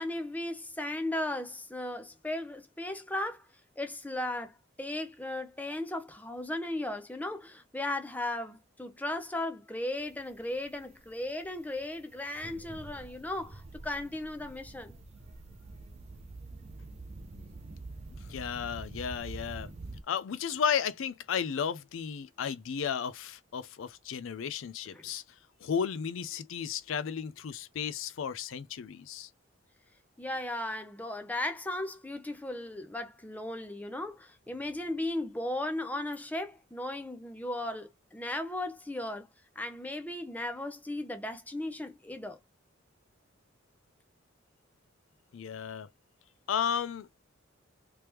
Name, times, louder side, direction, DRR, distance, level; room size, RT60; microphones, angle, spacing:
voice 1, 0.0-3.4 3.8-15.0 24.9-25.0 30.2-39.3 39.6-42.4, left 1 dB, 10° left, 0.6 m, -36 dB
sound 1, 10.0-20.0, right 2 dB, 35° right, 0.5 m, -46 dB
voice 2, 18.3-19.7 20.1-25.2 25.6-29.3 45.3-45.9 46.5-47.1, left 7 dB, 75° left, 0.4 m, -33 dB
3.3 x 3.0 x 3.0 m
head